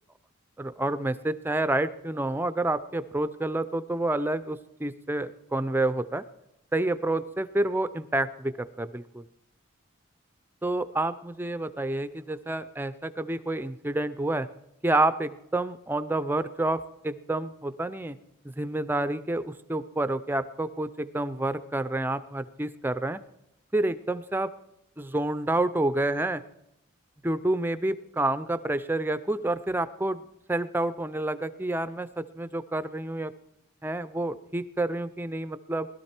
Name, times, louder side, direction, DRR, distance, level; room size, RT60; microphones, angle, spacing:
voice 1, 0.6-6.2 6.7-9.2 10.6-14.5 14.8-18.2 18.4-23.2 23.7-24.5 25.0-26.4 27.2-30.2 30.5-33.3 33.8-35.9, right 2 dB, 10° right, 13 dB, 0.4 m, -29 dB
20.0 x 12.5 x 4.4 m, 0.83 s
head